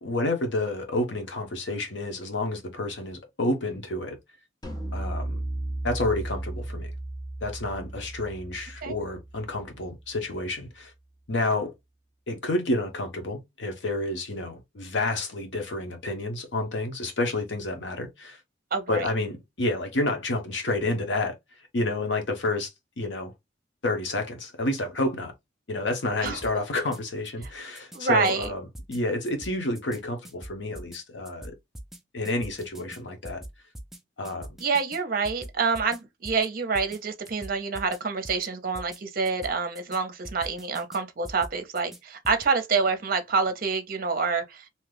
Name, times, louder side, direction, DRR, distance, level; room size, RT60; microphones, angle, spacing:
voice 1, 0.0-4.2 4.9-5.4 5.8-6.9 7.4-10.9 11.3-11.7 12.3-18.4 18.9-21.3 21.7-22.7 23.0-23.3 23.8-25.3 25.7-31.5 32.1-33.4 34.2-34.5, left 2 dB, 70° left, 0.9 m, -29 dB
sound 1, 4.6-10.0, right 1 dB, 20° left, 0.7 m, -35 dB
voice 2, 18.7-19.0 26.2-26.4 27.4-27.5 27.9-28.5 34.6-44.7, right 4 dB, 50° right, 0.6 m, -27 dB
sound 2, 26.2-27.0 27.3-28.0 28.2-29.0 29.2-30.0 30.2-31.0 31.3-32.0 32.2-33.0 33.2-34.0 34.2-35.0 35.2-36.0 36.2-36.5 36.7-37.0 37.2-38.0 38.2-38.5 38.7-39.0 39.3-40.0 40.2-41.0 41.2-42.0 42.2-42.5, right 1 dB, ahead, 0.3 m, -42 dB
2.8 x 2.3 x 3.3 m
head